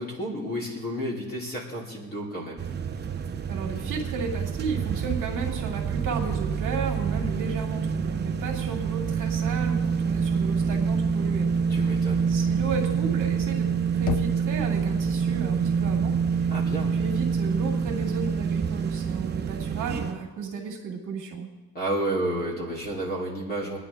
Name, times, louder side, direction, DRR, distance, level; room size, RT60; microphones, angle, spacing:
voice 1, 0.0-2.6 11.7-12.2 16.5-17.0 21.7-23.8, right 1 dB, 25° left, -3 dB, 3.0 m, -31 dB
sound 1, 2.6-20.1, right 6 dB, 25° right, 0.7 m, -27 dB
voice 2, 3.5-13.7 13.9-16.5 16.8-21.5, right 5 dB, 50° right, 0 dB, 2.1 m, -34 dB
Knock, 14.1-15.0, left 8 dB, 55° left, 0.6 m, -32 dB
23.5 x 9.7 x 3.4 m, 1.2 s
cardioid pair, 175°, 39 cm